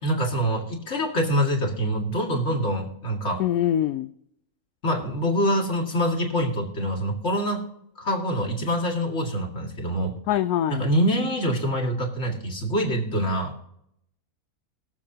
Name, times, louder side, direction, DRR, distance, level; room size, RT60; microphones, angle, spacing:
voice 1, 0.0-3.4 4.8-7.6 8.0-10.1 10.7-13.7, equal, 50° left, 1 dB, 2.5 m, -25 dB
voice 2, 3.4-4.1 10.3-10.8, left 11 dB, 80° left, 10 dB, 1.0 m, -23 dB
21.0 x 7.4 x 2.8 m, 0.75 s
omnidirectional pair, 1.6 m